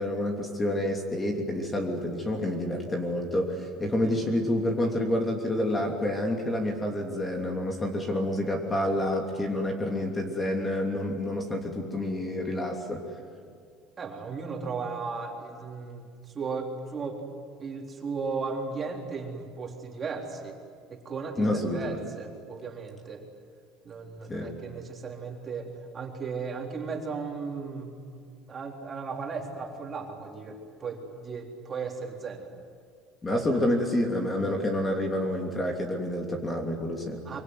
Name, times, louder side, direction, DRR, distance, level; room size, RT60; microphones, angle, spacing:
voice 1, 0.0-13.0 21.4-22.0 24.3-24.5 33.2-37.2, left 1 dB, 15° left, 2 dB, 3.1 m, -28 dB
voice 2, 3.8-4.2 14.0-16.0 16.3-17.2 17.6-20.6 20.9-23.2 23.8-28.2 28.5-32.5 33.3-33.4 37.3-37.4, right 4 dB, 25° right, 1 dB, 3.8 m, -36 dB
25.0 x 24.5 x 9.6 m, 2.1 s
cardioid pair, 140°, 0 cm